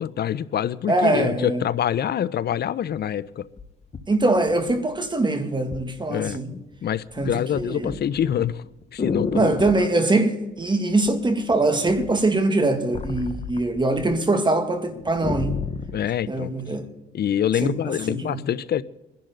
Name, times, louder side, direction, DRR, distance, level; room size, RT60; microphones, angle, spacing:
voice 1, 0.0-3.5 6.1-6.4 6.8-8.6 8.9-9.7 15.9-16.5 17.1-18.8, left 10 dB, 55° left, 0.7 m, -25 dB
voice 2, 0.9-1.6 4.1-6.5 7.2-7.9 9.3-15.6 16.3-16.9 17.6-18.4, right 2 dB, 25° right, 2.3 m, -23 dB
sound 1, 2.9-3.0 3.6-5.1 5.7-5.9 6.3-6.7 7.0-9.9 11.0-11.5 11.9-14.1 14.5-14.6 14.9-16.0 16.7-16.8, left 4 dB, 30° left, 1.3 m, -32 dB
25.0 x 11.0 x 3.9 m
cardioid pair, 90°, 20 cm